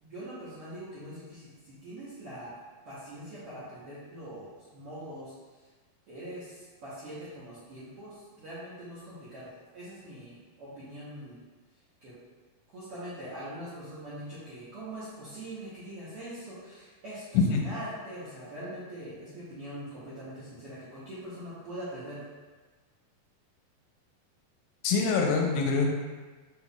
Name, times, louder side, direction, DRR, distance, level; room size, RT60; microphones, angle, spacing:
voice 1, 0.0-2.5 2.8-5.3 6.1-11.4 12.0-12.1 12.7-22.2, right 1 dB, 70° right, -12 dB, 1.4 m, -42 dB
voice 2, 17.3-17.7 24.8-25.9, left 4 dB, 80° left, 0 dB, 2.3 m, -24 dB
6.1 x 3.6 x 2.4 m, 1.3 s
omnidirectional pair, 4.1 m